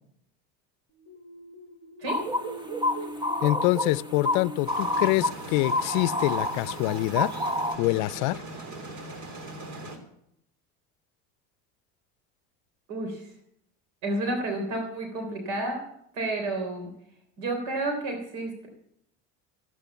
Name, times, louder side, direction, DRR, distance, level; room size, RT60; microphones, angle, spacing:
sound 1, 0.9-6.6, equal, 30° left, 1.1 m, -44 dB
sound 2, 2.1-7.8, left 1 dB, 15° right, 1.3 m, -29 dB
voice 1, 3.4-7.3 7.8-8.4, left 20 dB, 85° left, 0.5 m, -25 dB
sound 3, 4.6-10.0, right 2 dB, 55° right, 3.1 m, -40 dB
voice 2, 12.9-13.3 14.0-15.8 16.1-16.9 17.4-18.7, right 2 dB, 80° right, 3.6 m, -30 dB
14.5 x 9.2 x 7.2 m
supercardioid pair, 110°, 34 cm